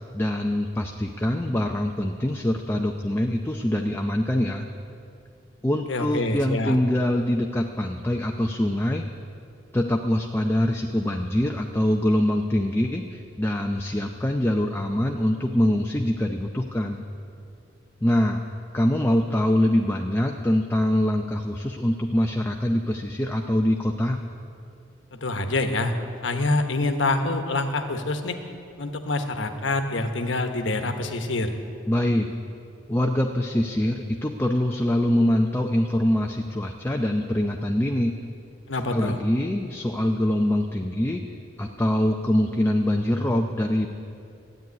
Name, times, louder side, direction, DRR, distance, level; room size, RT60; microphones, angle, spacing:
voice 1, 0.1-4.7 5.6-9.0 9.7-17.0 18.0-18.4 18.7-24.2 31.9-32.3 32.9-38.1 38.7-41.2 41.6-43.9, left 1 dB, 10° left, 2 dB, 0.6 m, -24 dB
voice 2, 5.9-6.8 25.1-25.9 26.2-28.4 28.8-31.5 38.7-39.2, left 2 dB, 70° left, 6 dB, 1.2 m, -26 dB
13.0 x 9.2 x 9.6 m, 2.5 s
head